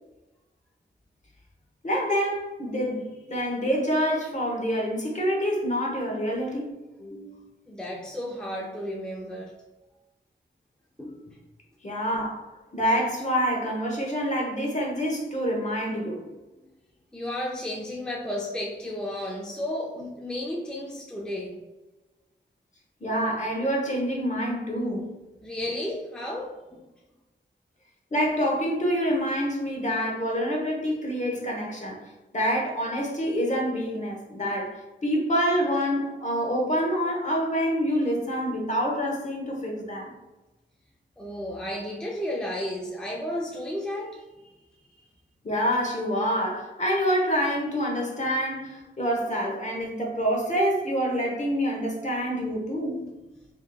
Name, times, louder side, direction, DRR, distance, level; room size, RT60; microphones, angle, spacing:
voice 1, 1.8-6.7 7.0-7.5 11.8-12.4 12.7-16.2 23.0-25.1 28.1-32.0 32.3-40.1 45.4-53.1, equal, 35° left, -1 dB, 1.1 m, -27 dB
voice 2, 7.7-9.5 11.0-11.4 17.1-21.6 25.4-26.8 41.2-44.2, left 1 dB, 5° left, -2 dB, 0.6 m, -33 dB
4.8 x 2.9 x 2.4 m, 1.1 s
cardioid pair, 65°, 20 cm